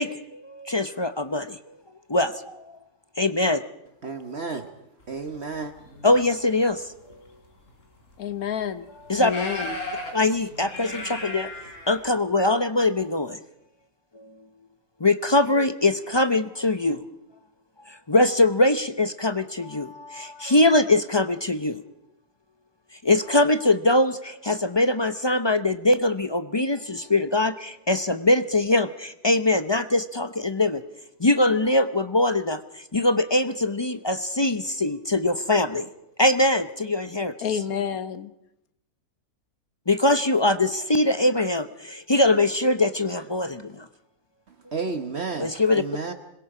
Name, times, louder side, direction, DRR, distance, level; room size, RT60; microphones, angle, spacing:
voice 1, 0.0-1.6 2.1-2.7 3.2-3.6 6.0-6.8 9.1-9.3 10.1-11.5 11.9-13.4 14.1-14.3 15.0-17.0 17.9-21.8 23.0-30.8 31.2-32.6 32.9-35.9 36.2-37.5 39.9-43.8 45.4-45.8, left 2 dB, 30° left, 0.5 m, -22 dB
voice 2, 4.0-4.7 5.1-5.7 44.5-46.1, right 4 dB, 45° right, 1.3 m, -32 dB
sound 1, 5.6-6.3 7.1-7.2 7.7-7.8 8.4-8.5 9.1-12.1, left 1 dB, 55° left, 3.8 m, -35 dB
voice 3, 8.2-8.9 9.2-9.8 37.4-38.3, left 8 dB, 70° left, 1.5 m, -29 dB
26.0 x 22.0 x 4.9 m
omnidirectional pair, 1.6 m